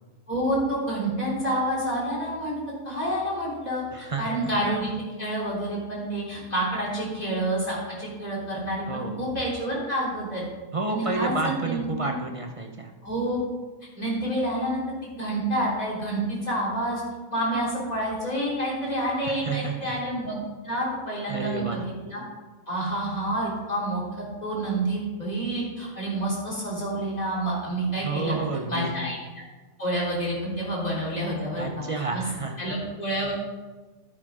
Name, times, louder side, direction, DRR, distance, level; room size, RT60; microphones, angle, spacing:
voice 1, 0.3-2.5 2.9-3.8 4.2-4.9 5.2-10.4 10.9-12.1 13.0-13.4 14.0-14.8 15.2-17.0 17.3-22.2 22.7-28.4 28.7-29.4 29.8-31.8 32.1-32.2 32.6-33.3, right 1 dB, 25° left, -5 dB, 3.4 m, -28 dB
voice 2, 3.9-4.5 8.9-9.2 10.7-12.9 19.3-19.9 21.3-21.8 28.0-28.9 31.6-32.5, right 3 dB, 40° right, 2 dB, 0.5 m, -30 dB
11.5 x 9.6 x 3.6 m, 1.3 s
omnidirectional pair, 1.7 m